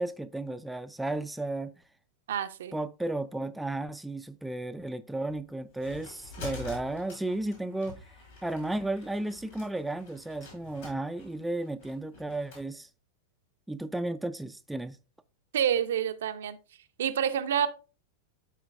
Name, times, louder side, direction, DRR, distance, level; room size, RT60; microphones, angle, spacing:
voice 1, 0.0-1.7 2.7-8.1 8.4-12.9 13.7-15.0, right 2 dB, 5° right, 0.3 m, -34 dB
voice 2, 2.3-2.8 15.5-16.6 17.0-17.7, right 9 dB, 60° right, 0.5 m, -28 dB
sound 1, 5.3-12.7, left 3 dB, 60° left, 4.1 m, -47 dB
11.5 x 4.3 x 2.4 m
figure-of-eight pair, 90°, 0 cm